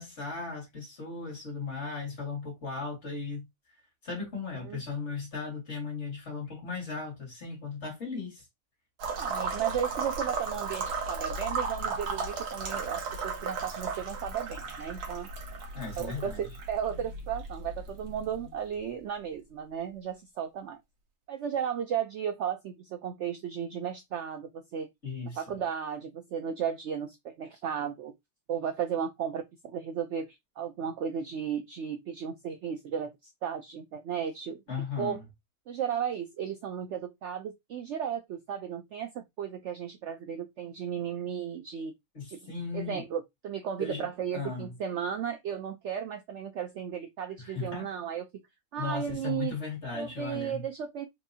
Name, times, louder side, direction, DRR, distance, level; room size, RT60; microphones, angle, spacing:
voice 1, 0.0-3.4 4.0-8.4 15.7-16.4 25.0-25.4 34.7-35.2 42.1-43.0 43.8-44.1 44.3-44.7 47.4-47.9 48.8-50.6, left 4 dB, 45° left, 2.3 m, -36 dB
sound 1, 9.0-18.8, right 4 dB, 85° right, 1.5 m, -35 dB
voice 2, 9.2-15.3 16.0-20.8 21.3-24.9 25.4-28.1 28.5-29.4 29.7-34.6 35.0-35.2 35.7-41.9 42.3-48.3 48.7-49.5 49.9-51.1, right 8 dB, 70° right, 0.7 m, -35 dB
4.7 x 2.6 x 2.7 m
omnidirectional pair, 1.6 m